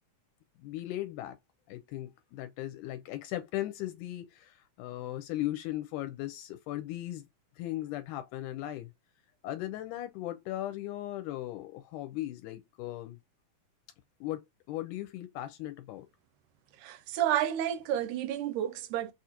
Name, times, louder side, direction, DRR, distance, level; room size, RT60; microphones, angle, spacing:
voice 1, 0.6-1.4 1.7-7.3 7.6-8.9 9.4-13.2 14.2-16.1, left 14 dB, 85° left, 2.0 m, -37 dB
voice 2, 16.8-19.1, right 11 dB, 80° right, 2.0 m, -30 dB
6.1 x 2.5 x 2.8 m
omnidirectional pair, 3.6 m